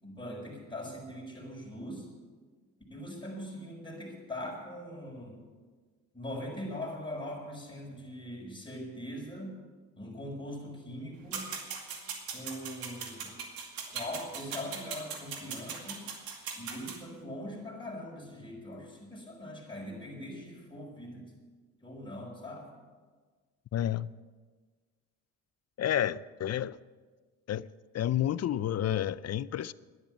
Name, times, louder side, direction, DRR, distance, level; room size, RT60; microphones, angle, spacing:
voice 1, 0.0-2.1 2.9-5.4 6.1-9.6 10.0-11.5 12.3-13.4 13.9-16.0 16.6-21.3 21.8-22.7, left 1 dB, 15° left, 5.9 m, -41 dB
sound 1, 11.3-17.0, right 6 dB, 75° right, 2.3 m, -40 dB
voice 2, 23.7-24.1 25.8-26.8 27.5-27.7 27.9-29.7, left 11 dB, 45° left, 0.5 m, -30 dB
12.0 x 10.5 x 8.7 m
supercardioid pair, 75°, 36 cm